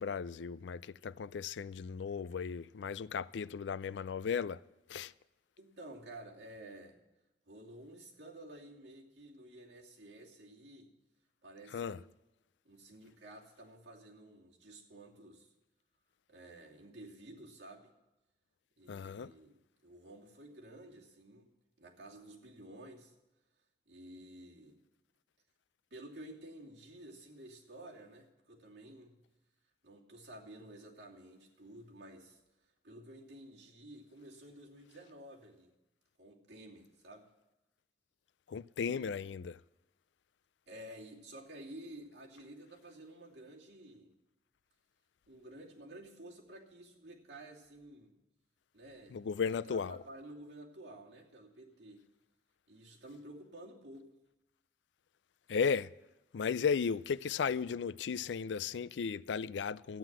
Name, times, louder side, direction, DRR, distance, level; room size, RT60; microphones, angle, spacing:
voice 1, 0.0-4.6 4.9-5.1 11.7-12.0 18.9-19.3 38.5-39.6 49.1-50.0 55.5-55.9 56.3-60.0, left 6 dB, 85° left, 0.4 m, -35 dB
voice 2, 5.6-7.0 7.5-10.9 11.4-12.0 12.6-15.5 16.3-17.9 18.8-19.6 19.8-21.5 21.8-23.1 23.9-24.8 25.9-29.2 29.8-32.4 32.8-35.7 36.2-37.3 38.8-39.1 40.7-44.1 45.3-48.1 48.7-49.2 49.4-52.0 52.7-54.1, right 1 dB, 70° right, 2.7 m, -52 dB
14.0 x 9.6 x 7.5 m
head